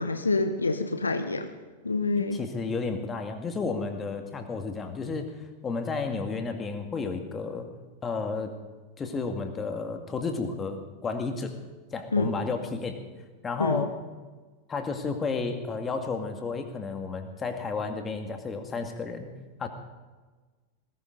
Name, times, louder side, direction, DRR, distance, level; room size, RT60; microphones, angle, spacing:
voice 1, 0.0-1.5 1.8-2.4 12.1-12.4 13.6-13.8, left 3 dB, 80° left, 9 dB, 1.0 m, -27 dB
voice 2, 2.2-5.3 5.6-7.7 8.0-8.5 9.0-11.5 11.9-13.0 13.4-13.9 14.7-19.3 19.6-19.7, left 4 dB, 20° left, 5 dB, 2.1 m, -32 dB
19.5 x 17.0 x 4.0 m, 1.3 s
figure-of-eight pair, 90°, 0 cm